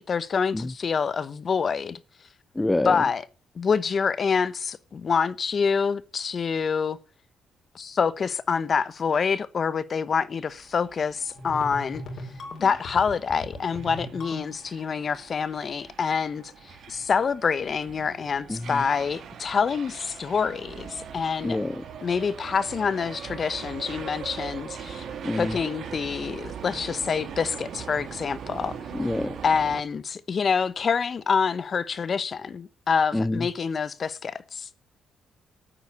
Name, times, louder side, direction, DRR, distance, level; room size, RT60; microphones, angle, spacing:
voice 1, 0.0-2.0 2.8-3.2 3.5-7.0 7.7-12.0 12.6-21.6 22.0-25.0 25.4-28.8 29.4-34.7, left 6 dB, 45° left, 0.9 m, -26 dB
voice 2, 2.5-3.0 18.5-18.8 21.4-21.8 25.2-25.6 28.9-29.4 33.1-33.5, left 2 dB, 15° left, 0.7 m, -27 dB
sound 1, 10.4-29.8, right 7 dB, 65° right, 2.3 m, -41 dB
sound 2, 11.4-14.8, left 1 dB, 60° left, 3.9 m, -38 dB
8.9 x 8.5 x 8.3 m
cardioid pair, 90°, 0 cm